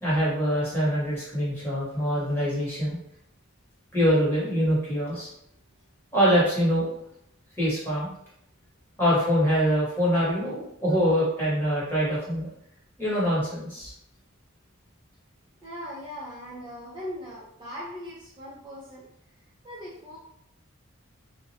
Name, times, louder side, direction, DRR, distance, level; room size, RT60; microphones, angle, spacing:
voice 1, 0.0-3.0 3.9-5.3 6.1-6.9 7.6-8.1 9.0-12.5 13.0-13.9, equal, 10° left, -9 dB, 1.1 m, -24 dB
voice 2, 15.6-19.0 19.6-20.2, equal, 25° right, -7 dB, 0.5 m, -39 dB
2.3 x 2.1 x 2.7 m, 0.74 s
head